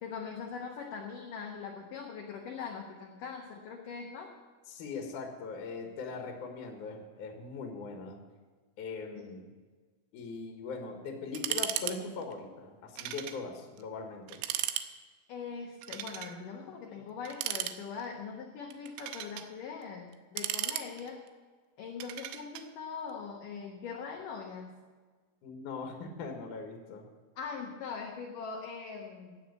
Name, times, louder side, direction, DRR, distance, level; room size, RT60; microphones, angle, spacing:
voice 1, 0.0-4.3 15.3-21.2 21.8-24.8 27.4-29.5, left 5 dB, 80° left, 1 dB, 1.9 m, -41 dB
voice 2, 4.7-8.2 8.8-9.5 10.1-14.4 25.4-27.0, left 4 dB, 60° left, 3 dB, 2.3 m, -40 dB
sound 1, 11.4-12.0 12.2-12.3 13.0-13.4 13.8-13.9 14.3-14.9 15.8-16.4 17.3-18.1 18.7-19.5 20.1-21.3 22.0-22.7, right 12 dB, 80° right, 3.0 m, -36 dB
16.0 x 7.1 x 8.3 m, 1.4 s
omnidirectional pair, 5.5 m